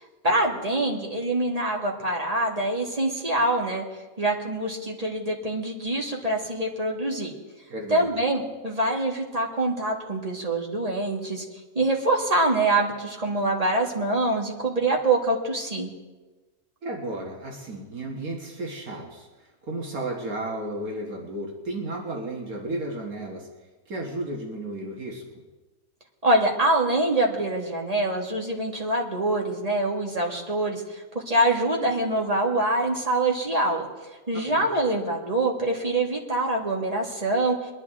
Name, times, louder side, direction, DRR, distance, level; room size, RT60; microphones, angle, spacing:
voice 1, 0.2-3.8 4.2-7.3 7.9-11.4 11.8-15.9 26.2-30.8 31.1-33.9 34.3-37.6, right 2 dB, 25° right, -1 dB, 2.0 m, -25 dB
voice 2, 7.7-8.2 16.8-23.5 23.9-25.2 34.5-34.7, right 1 dB, 75° right, 0 dB, 2.0 m, -33 dB
22.5 x 11.0 x 3.7 m, 1.2 s
omnidirectional pair, 1.5 m